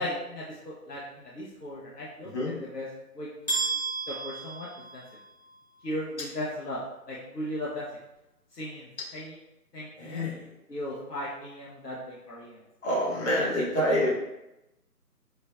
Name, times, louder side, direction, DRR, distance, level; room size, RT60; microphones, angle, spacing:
voice 1, 0.0-2.9 3.1-3.8 4.1-5.0 5.8-6.8 7.1-7.9 8.5-9.3 9.7-10.3 10.7-12.6 13.4-13.5 13.8-14.1, left 1 dB, 75° left, -5 dB, 0.9 m, -37 dB
sound 1, 3.5-5.5, right 3 dB, 25° left, 0.8 m, -32 dB
voice 2, 10.0-10.4 12.8-14.1, equal, 45° left, -7 dB, 1.4 m, -27 dB
5.0 x 2.2 x 2.2 m, 0.93 s
figure-of-eight pair, 160°, 48 cm